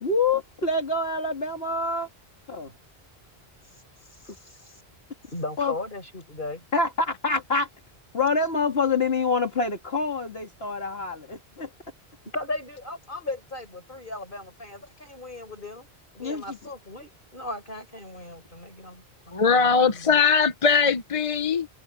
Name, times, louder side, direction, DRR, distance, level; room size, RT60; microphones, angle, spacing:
voice 1, 0.0-2.1 2.5-2.7 5.6-5.7 6.7-7.7 8.1-11.7 16.2-16.6, left 3 dB, 70° left, 2.5 m, -26 dB
voice 2, 4.2-4.8 5.3-6.6 12.3-15.9 16.1-20.2, left 2 dB, 50° left, 4.9 m, -37 dB
voice 3, 19.3-21.7, left 5 dB, 35° left, 0.8 m, -21 dB
omnidirectional pair, 1.1 m